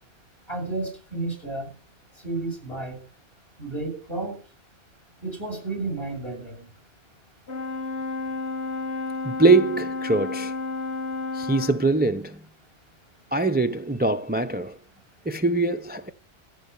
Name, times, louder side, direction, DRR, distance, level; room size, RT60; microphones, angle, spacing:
voice 1, 0.5-1.7 2.1-3.0 3.6-4.4 5.2-6.7, right 2 dB, 60° left, 7.2 m, -32 dB
Brass instrument, 7.5-11.9, left 3 dB, 75° left, 1.9 m, -31 dB
voice 2, 9.2-10.5 11.3-12.4 13.3-14.8 15.3-16.1, right 3 dB, 10° right, 0.6 m, -22 dB
15.0 x 9.0 x 7.0 m
omnidirectional pair, 1.2 m